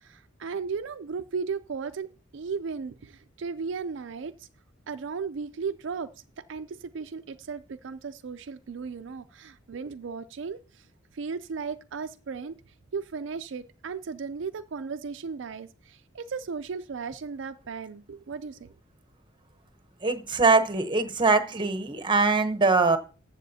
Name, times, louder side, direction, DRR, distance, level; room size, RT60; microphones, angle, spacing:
voice 1, 0.0-4.5 4.9-6.1 6.5-10.9 11.1-12.6 12.9-18.7, right 5 dB, 65° right, 8 dB, 0.4 m, -36 dB
voice 2, 20.0-23.0, right 3 dB, 25° right, 9 dB, 0.8 m, -22 dB
14.5 x 7.4 x 2.8 m, 0.37 s
head